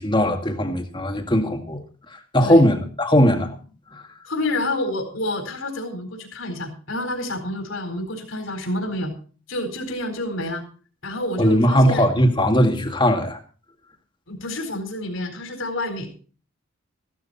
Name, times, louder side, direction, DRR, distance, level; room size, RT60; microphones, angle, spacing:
voice 1, 0.0-1.8 2.1-3.6 3.9-4.0 11.4-13.4, equal, 25° left, 2.1 m, -19 dB
voice 2, 4.3-9.1 9.5-10.6 11.0-12.1 14.3-16.2, left 1 dB, 65° left, 4.4 m, -28 dB
15.5 x 13.0 x 4.2 m
head